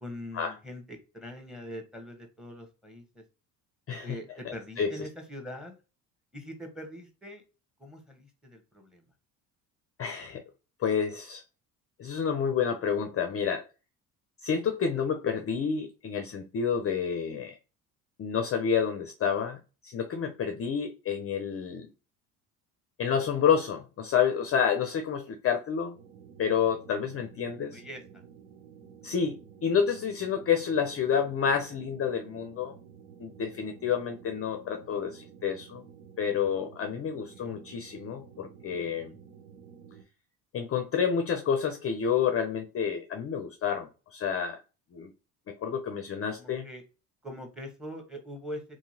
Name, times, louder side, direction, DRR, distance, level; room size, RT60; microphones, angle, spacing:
voice 1, 0.0-3.2 4.0-5.8 6.3-7.4 7.8-9.1 27.6-28.0 37.3-37.6 46.4-46.8 47.2-48.6, equal, ahead, 1.0 m, -43 dB
voice 2, 3.9-4.2 4.4-4.9 10.0-10.4 10.8-11.4 12.0-13.6 14.4-17.5 18.2-21.9 23.0-25.9 26.4-27.8 29.0-32.8 33.2-35.8 36.2-39.1 40.5-44.6 44.9-45.1 45.5-46.7, left 7 dB, 35° left, 0.5 m, -29 dB
sound 1, 25.9-40.0, right 7 dB, 80° right, 1.0 m, -52 dB
2.8 x 2.7 x 2.6 m
hypercardioid pair, 70°, 44 cm